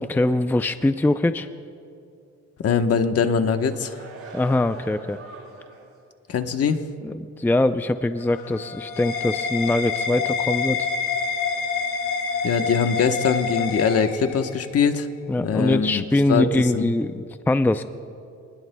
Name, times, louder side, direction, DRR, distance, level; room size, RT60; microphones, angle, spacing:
voice 1, 0.1-1.5 4.3-5.2 7.0-10.9 15.3-17.1 17.5-17.8, left 2 dB, 5° left, 10 dB, 0.5 m, -22 dB
voice 2, 2.6-4.0 6.3-6.8 12.4-15.1 15.4-16.0 16.3-16.9, left 6 dB, 50° left, 7 dB, 1.1 m, -22 dB
sound 1, 3.2-6.0 6.4-6.5, right 3 dB, 50° right, 5.1 m, -42 dB
sound 2, 8.2-14.7, left 5 dB, 90° left, 2.4 m, -27 dB
27.5 x 20.0 x 2.3 m, 2.4 s
cardioid pair, 90°, 30 cm